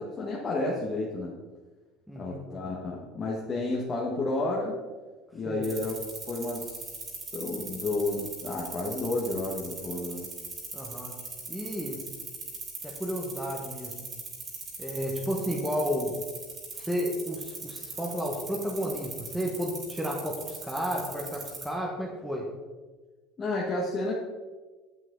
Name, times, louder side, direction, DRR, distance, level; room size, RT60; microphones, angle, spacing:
voice 1, 0.0-1.3 2.1-4.8 5.3-5.9 6.3-6.7 7.3-10.3 23.4-24.1, left 2 dB, 35° left, -4 dB, 1.5 m, -31 dB
voice 2, 2.1-2.4 5.5-5.7 10.7-11.1 11.5-12.0 12.8-14.1 14.8-16.1 16.7-22.5, equal, 5° right, -1 dB, 1.4 m, -32 dB
sound 1, 5.6-21.7, right 4 dB, 35° right, 3.1 m, -39 dB
8.2 x 7.6 x 3.9 m, 1.3 s
supercardioid pair, 105°, 0 cm